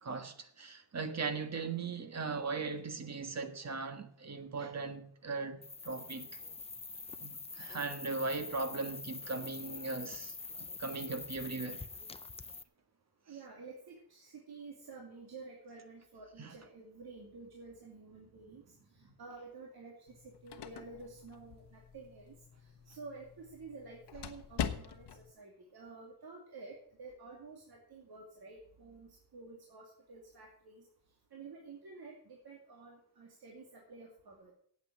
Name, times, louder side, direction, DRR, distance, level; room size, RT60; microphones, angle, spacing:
voice 1, 0.0-6.3 7.2-11.8 16.4-16.5, right 4 dB, 40° right, 1.5 m, -39 dB
sound 1, 5.6-12.6, left 4 dB, 15° left, 0.5 m, -45 dB
voice 2, 13.3-22.3 22.9-30.8 31.3-34.5, right 4 dB, 65° right, 2.6 m, -51 dB
sound 2, 20.1-25.3, left 8 dB, 80° left, 1.2 m, -43 dB
8.7 x 8.6 x 8.6 m
wide cardioid pair, 115°, 40 cm